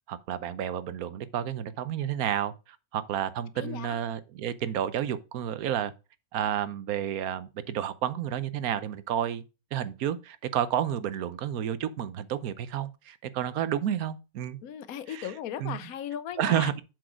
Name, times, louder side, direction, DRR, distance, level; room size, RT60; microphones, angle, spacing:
voice 1, 0.1-2.5 2.9-5.9 6.3-9.4 9.7-14.6 15.1-15.3 15.6-15.9 16.4-16.8, right 10 dB, 80° right, 1.2 m, -30 dB
voice 2, 3.6-4.0 14.6-16.7, left 9 dB, 75° left, 1.1 m, -37 dB
7.7 x 4.8 x 4.8 m
omnidirectional pair, 1.5 m